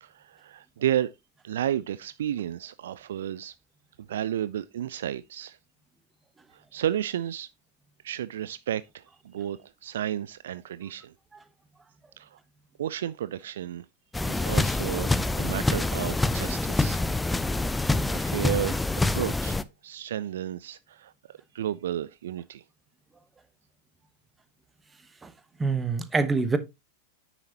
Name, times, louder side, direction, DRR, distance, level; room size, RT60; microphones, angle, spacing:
voice 1, 0.0-1.1 1.4-3.5 4.1-5.6 6.5-7.5 8.0-11.1 12.2-12.4 12.8-13.9 14.3-17.0 17.7-18.8 19.1-22.6, right 11 dB, 60° right, 0.3 m, -32 dB
sound 1, 14.1-19.6, left 2 dB, 5° left, 0.5 m, -26 dB
voice 2, 25.6-26.6, right 4 dB, 15° right, 1.1 m, -25 dB
9.6 x 6.9 x 2.8 m
figure-of-eight pair, 90°, 0 cm